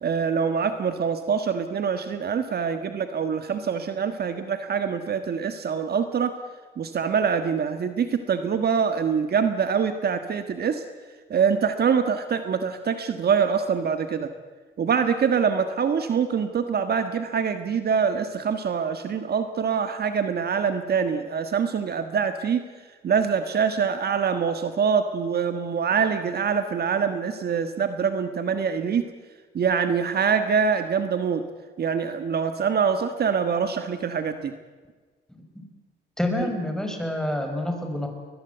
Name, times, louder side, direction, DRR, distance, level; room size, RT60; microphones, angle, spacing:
voice 1, 0.0-6.3 6.8-10.8 11.3-14.3 14.8-22.6 23.0-29.1 29.5-31.4 31.8-34.5, right 6 dB, 55° right, 9 dB, 1.5 m, -24 dB
voice 2, 36.2-38.1, left 1 dB, 5° left, 4 dB, 5.2 m, -27 dB
21.0 x 20.5 x 8.1 m, 1.4 s
cardioid pair, 90°, 20 cm